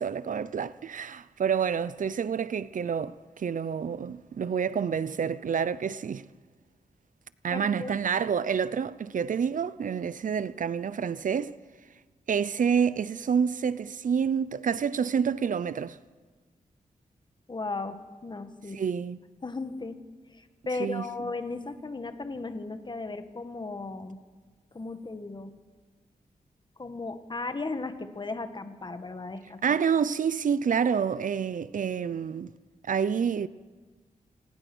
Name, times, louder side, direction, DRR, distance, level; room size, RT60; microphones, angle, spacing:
voice 1, 0.0-6.3 7.4-11.5 12.3-16.0 18.7-19.2 20.8-21.1 29.6-32.5 32.9-33.5, right 7 dB, 65° right, 0.6 m, -28 dB
voice 2, 7.5-8.0 17.5-18.8 19.4-20.0 20.3-24.2 24.7-25.6 26.8-29.6, left 3 dB, 30° left, 1.6 m, -36 dB
27.5 x 19.5 x 6.2 m
wide cardioid pair, 115°, 14 cm